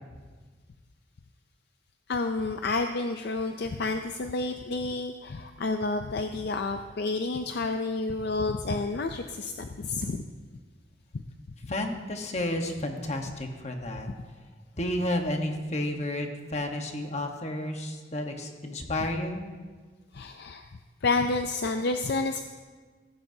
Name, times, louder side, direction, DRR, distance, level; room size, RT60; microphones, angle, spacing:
voice 1, 2.1-10.2 20.1-20.7 21.0-22.4, left 3 dB, 55° left, 7 dB, 0.5 m, -30 dB
voice 2, 11.7-14.1 14.7-19.4, left 1 dB, 35° left, 4 dB, 1.2 m, -31 dB
15.5 x 15.0 x 2.7 m, 1.4 s
head